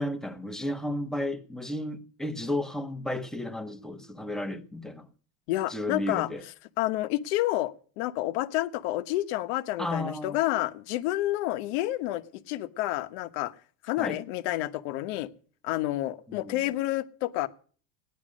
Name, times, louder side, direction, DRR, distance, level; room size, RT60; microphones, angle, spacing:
voice 1, 0.0-5.1 5.7-6.4 9.8-10.4 14.0-14.2 16.3-16.6, left 1 dB, ahead, 1.0 m, -33 dB
voice 2, 5.5-6.3 6.8-13.5 13.8-15.3 15.6-17.5, left 16 dB, 85° left, 1.2 m, -29 dB
17.0 x 10.5 x 6.4 m
cardioid pair, 155°, 33 cm